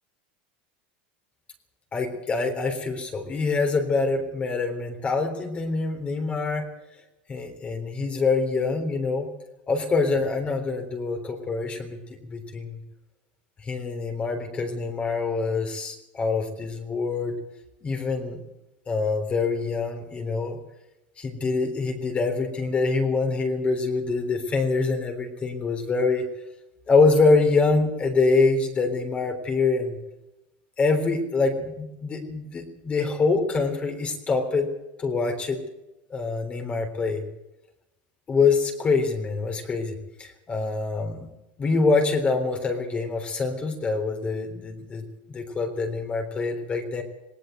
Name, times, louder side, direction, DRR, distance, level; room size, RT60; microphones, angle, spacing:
voice 1, 1.9-6.7 7.3-9.3 9.7-12.8 13.6-17.4 17.8-18.4 18.9-20.6 21.2-26.3 26.9-30.0 30.8-34.7 35.0-35.6 36.1-37.2 38.3-41.3 41.6-47.0, left 4 dB, 25° left, 4 dB, 3.6 m, -25 dB
18.5 x 18.5 x 8.1 m, 0.94 s
supercardioid pair, 130°, 5 cm